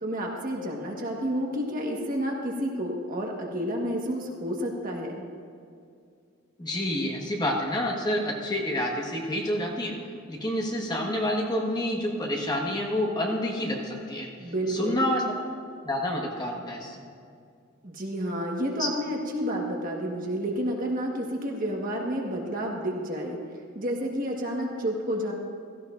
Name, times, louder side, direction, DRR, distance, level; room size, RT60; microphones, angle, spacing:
voice 1, 0.0-5.1 14.4-15.0 17.8-23.4 23.7-25.3, equal, 45° right, -1 dB, 1.5 m, -30 dB
voice 2, 6.6-10.0 10.3-14.3 14.7-15.2 15.8-17.1 18.8-18.9, left 1 dB, 20° left, -1 dB, 1.5 m, -28 dB
16.5 x 14.0 x 2.6 m, 2.3 s
head